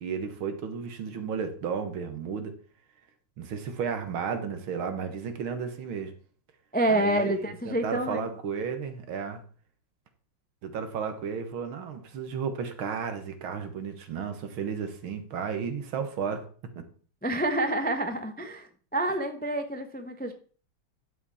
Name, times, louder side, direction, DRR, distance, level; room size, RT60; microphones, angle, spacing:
voice 1, 0.0-2.6 3.4-6.1 6.9-9.4 10.6-16.5 16.8-16.9, right 6 dB, 80° right, 2.1 m, -33 dB
voice 2, 6.7-8.3 17.2-20.3, right 1 dB, 10° left, 0.4 m, -28 dB
11.0 x 7.8 x 4.2 m
omnidirectional pair, 2.2 m